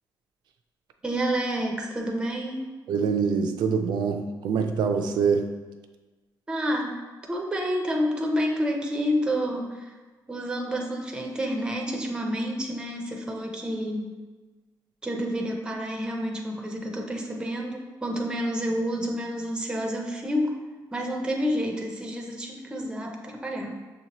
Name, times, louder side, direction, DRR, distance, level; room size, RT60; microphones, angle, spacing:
voice 1, 1.0-2.6 6.5-6.9 7.3-9.9 10.3-14.1 15.0-20.5 20.9-23.8, equal, 10° right, 1 dB, 0.5 m, -29 dB
voice 2, 2.9-5.5, right 6 dB, 90° right, 5 dB, 0.4 m, -25 dB
6.5 x 2.8 x 2.9 m, 1.3 s
cardioid pair, 165°, 7 cm